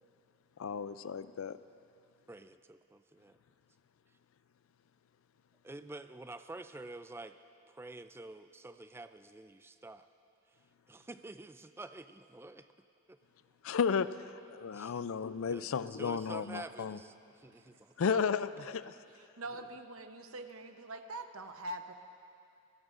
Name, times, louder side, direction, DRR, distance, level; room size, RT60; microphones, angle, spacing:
voice 1, 0.6-1.6 13.6-14.1 14.5-17.0 18.0-18.9, left 6 dB, 75° left, 14 dB, 0.4 m, -33 dB
voice 2, 2.3-3.4 5.6-7.4 7.7-10.1 10.5-10.6 10.9-12.7 13.1-13.2 14.7-15.1 15.5-17.9, right 2 dB, 10° right, 10 dB, 0.3 m, -48 dB
voice 3, 19.1-21.9, right 1 dB, 90° right, 7 dB, 0.9 m, -44 dB
26.0 x 17.0 x 2.5 m, 2.5 s
head